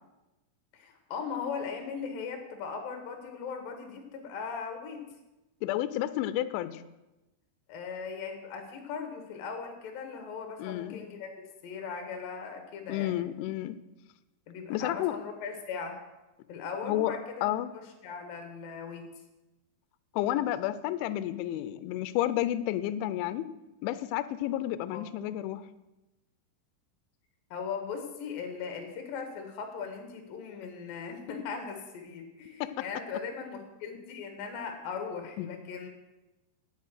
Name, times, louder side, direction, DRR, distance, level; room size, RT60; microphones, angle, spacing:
voice 1, 0.7-5.0 7.7-11.3 11.6-13.3 14.5-16.0 16.5-17.5 17.7-19.1 24.9-25.1 27.5-35.9, left 5 dB, 60° left, 5 dB, 2.6 m, -39 dB
voice 2, 5.6-6.8 10.6-11.0 12.9-13.8 14.7-15.2 16.8-17.1 17.4-17.7 20.1-23.5 23.8-25.7 32.6-32.8 35.4-35.5, left 13 dB, 85° left, 13 dB, 2.8 m, -31 dB
9.5 x 8.2 x 6.2 m, 1.0 s
omnidirectional pair, 5.6 m